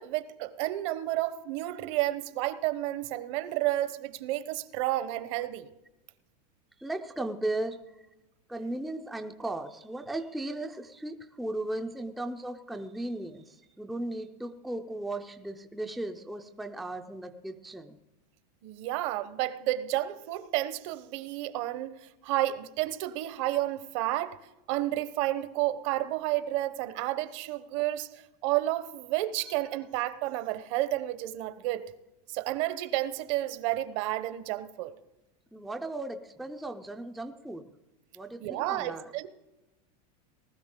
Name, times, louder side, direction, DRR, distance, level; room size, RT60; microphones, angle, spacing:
voice 1, 0.0-5.7 18.6-24.4 24.7-31.9 32.3-34.9 38.4-39.3, right 15 dB, 50° right, 0.8 m, -31 dB
voice 2, 6.8-8.1 8.5-18.0 35.5-37.6 38.1-39.1, right 2 dB, ahead, 0.4 m, -36 dB
19.5 x 13.0 x 3.7 m
supercardioid pair, 155°, 21 cm